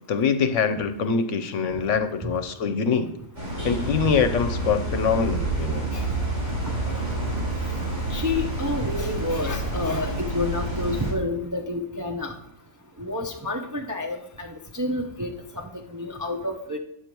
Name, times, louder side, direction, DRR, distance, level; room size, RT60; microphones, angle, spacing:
voice 1, 0.1-3.1 3.6-5.9, left 6 dB, 70° left, 10 dB, 1.0 m, -24 dB
sound 1, 3.3-11.1, right 2 dB, 60° right, 4.4 m, -28 dB
voice 2, 8.1-12.3 13.0-16.8, left 2 dB, 20° right, 2 dB, 0.5 m, -29 dB
9.0 x 6.8 x 4.5 m, 0.74 s
omnidirectional pair, 1.4 m